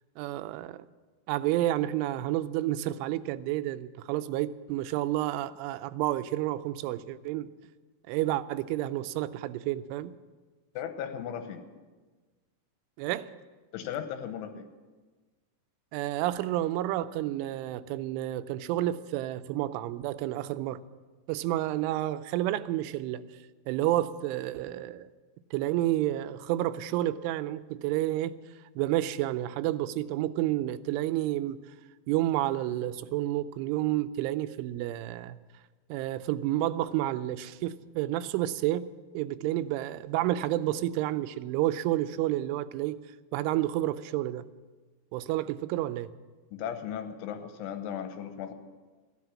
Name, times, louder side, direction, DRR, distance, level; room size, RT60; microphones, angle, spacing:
voice 1, 0.2-0.9 1.3-7.5 8.1-10.1 13.0-13.3 15.9-20.8 21.3-23.3 23.7-25.1 25.5-28.4 28.8-31.6 32.1-35.4 35.9-38.9 39.1-43.0 43.3-44.5 45.1-46.1, right 14 dB, 90° right, 13 dB, 3.1 m, -30 dB
voice 2, 10.8-11.6 13.7-14.7 46.5-48.5, left 8 dB, 90° left, 8 dB, 3.6 m, -36 dB
15.0 x 11.0 x 7.3 m, 1.3 s
omnidirectional pair, 5.4 m